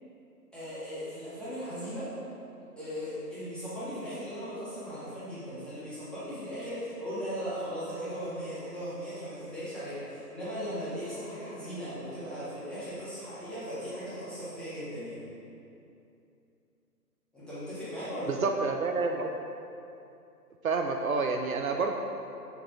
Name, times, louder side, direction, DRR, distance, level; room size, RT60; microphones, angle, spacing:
voice 1, 0.5-2.1 2.8-15.2 17.3-18.4, equal, ahead, -13 dB, 1.8 m, -38 dB
voice 2, 18.3-19.3 20.6-22.0, right 4 dB, 60° right, 3 dB, 0.7 m, -28 dB
7.0 x 6.3 x 4.9 m, 2.7 s
figure-of-eight pair, 140°, 47 cm